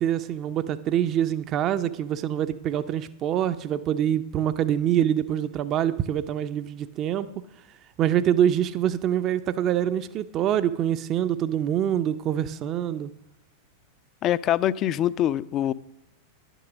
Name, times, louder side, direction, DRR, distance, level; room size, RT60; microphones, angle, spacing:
voice 1, 0.0-7.5 8.0-13.1, right 10 dB, 35° right, 0.5 m, -25 dB
voice 2, 14.2-15.7, left 11 dB, 35° left, 0.4 m, -24 dB
11.0 x 9.1 x 6.3 m
figure-of-eight pair, 90°, 0 cm